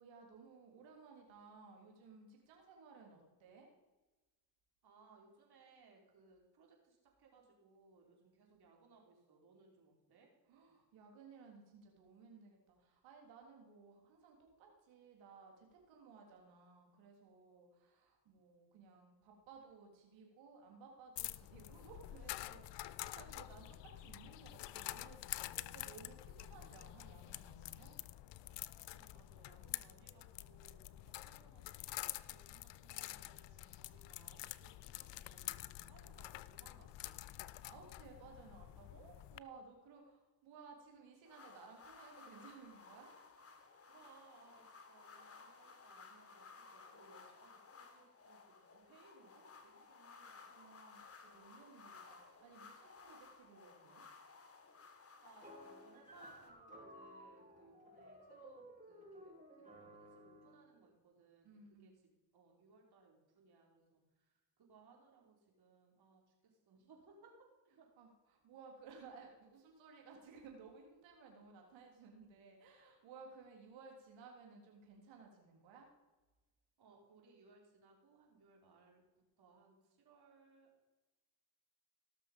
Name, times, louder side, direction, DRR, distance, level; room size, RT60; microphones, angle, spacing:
voice 1, 0.0-3.7 10.5-28.0 37.6-43.1 50.5-54.0 61.4-62.0 68.0-68.1 68.4-75.9, right 5 dB, 85° right, 1 dB, 3.5 m, -58 dB
voice 2, 4.8-10.3 28.9-37.2 43.9-50.5 55.2-67.3 67.6-67.9 76.8-79.0 79.4-80.9, right 4 dB, 55° right, 0 dB, 4.4 m, -66 dB
sound 1, 21.2-39.4, left 15 dB, 70° left, 0.6 m, -48 dB
sound 2, 41.2-56.5, left 4 dB, 30° left, 1.7 m, -58 dB
sound 3, 55.4-60.6, equal, 15° right, 5.0 m, -56 dB
18.0 x 6.5 x 5.3 m, 1.1 s
supercardioid pair, 75°, 45 cm